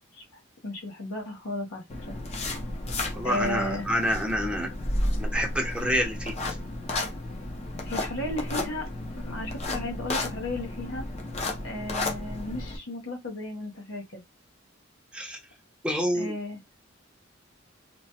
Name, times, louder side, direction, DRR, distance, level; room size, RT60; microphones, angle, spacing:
voice 1, 0.6-2.2 3.2-3.9 7.8-8.9 9.2-11.1 11.6-14.2 16.1-16.6, left 1 dB, 80° left, 0.9 m, -34 dB
sound 1, 1.9-12.8, left 1 dB, 35° left, 0.6 m, -32 dB
voice 2, 3.1-4.7 5.2-6.3 15.1-15.4 15.8-16.3, equal, 5° right, 0.7 m, -28 dB
3.1 x 2.1 x 2.8 m
head